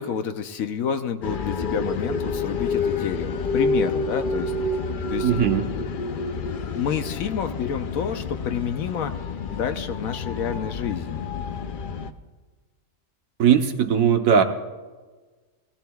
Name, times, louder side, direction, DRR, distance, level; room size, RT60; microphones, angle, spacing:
voice 1, 0.0-4.5 5.1-5.3 6.8-9.1 9.5-11.3, left 7 dB, 75° left, 8 dB, 1.2 m, -29 dB
sound 1, 1.2-12.1, left 3 dB, 55° left, 0.6 m, -28 dB
voice 2, 5.2-5.7 13.4-14.4, right 7 dB, 75° right, 6 dB, 1.3 m, -19 dB
21.5 x 15.5 x 2.3 m, 1.3 s
omnidirectional pair, 1.5 m